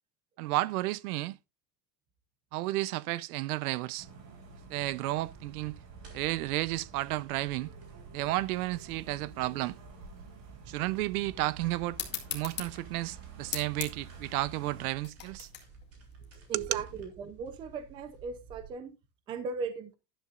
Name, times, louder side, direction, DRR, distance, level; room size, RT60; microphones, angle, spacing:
voice 1, 0.4-1.4 2.5-4.1 4.7-5.8 6.1-7.7 8.1-9.8 10.7-12.0 12.3-15.5 16.5-16.8, right 18 dB, 65° right, 0.7 m, -32 dB
sound 1, 4.0-14.9, right 5 dB, 80° right, 7.8 m, -50 dB
sound 2, 5.3-18.7, right 4 dB, 30° right, 3.4 m, -54 dB
sound 3, 11.9-17.0, left 9 dB, 20° left, 2.0 m, -41 dB
voice 2, 16.5-18.9 19.3-19.9, right 4 dB, 10° right, 0.4 m, -38 dB
12.5 x 11.5 x 2.4 m
supercardioid pair, 175°, 48 cm